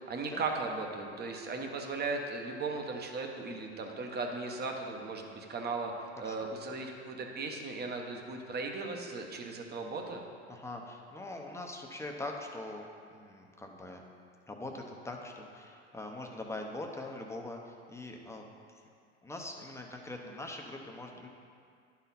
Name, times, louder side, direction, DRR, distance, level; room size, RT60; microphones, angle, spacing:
voice 1, 0.0-10.2, right 3 dB, 25° right, 2 dB, 1.1 m, -37 dB
voice 2, 10.5-14.0 14.5-18.5 19.2-21.3, left 2 dB, 10° left, 1 dB, 0.8 m, -42 dB
11.0 x 4.3 x 4.1 m, 2.3 s
hypercardioid pair, 90°, 36 cm